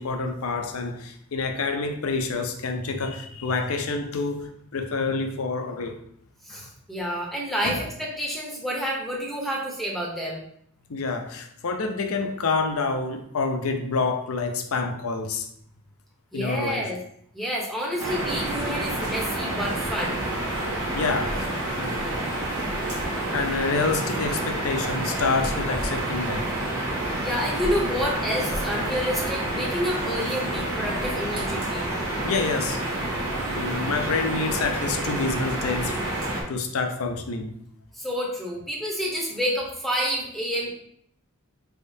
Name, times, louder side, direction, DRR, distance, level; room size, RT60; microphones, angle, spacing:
voice 1, 0.0-6.0 6.5-6.7 7.6-7.9 10.9-15.5 16.3-16.9 17.9-18.1 20.9-21.5 21.8-22.0 22.3-22.7 23.2-26.5 32.2-32.8 33.5-36.0 36.5-37.6, left 4 dB, 80° left, 6 dB, 0.5 m, -28 dB
voice 2, 6.4-10.4 16.3-17.0 17.3-20.2 27.2-31.9 37.9-40.7, equal, ahead, -2 dB, 0.7 m, -29 dB
sound 1, 18.0-36.4, right 1 dB, 90° right, 1.3 m, -28 dB
4.2 x 3.5 x 2.6 m, 0.69 s
head